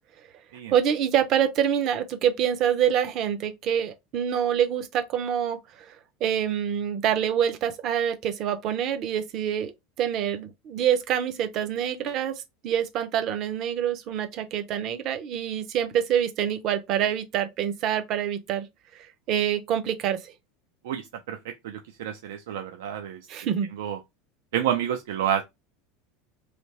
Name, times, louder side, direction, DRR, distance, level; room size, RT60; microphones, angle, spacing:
voice 1, 0.7-6.0 6.2-9.7 10.0-18.7 18.9-20.3 23.3-23.7, right 9 dB, 35° right, 0.5 m, -26 dB
voice 2, 20.8-23.2 23.8-24.0 24.5-25.4, right 10 dB, 85° right, 0.4 m, -29 dB
3.3 x 2.7 x 2.9 m
supercardioid pair, 170°, 0 cm